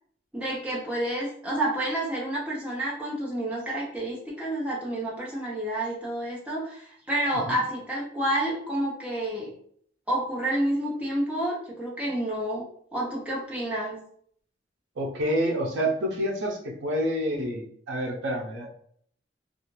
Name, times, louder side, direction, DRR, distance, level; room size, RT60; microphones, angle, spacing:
voice 1, 0.3-9.5 10.1-12.6 12.9-14.0, right 1 dB, 5° right, -5 dB, 0.6 m, -29 dB
voice 2, 15.0-18.7, equal, 90° right, 0 dB, 0.6 m, -28 dB
2.4 x 2.4 x 3.0 m, 0.63 s
head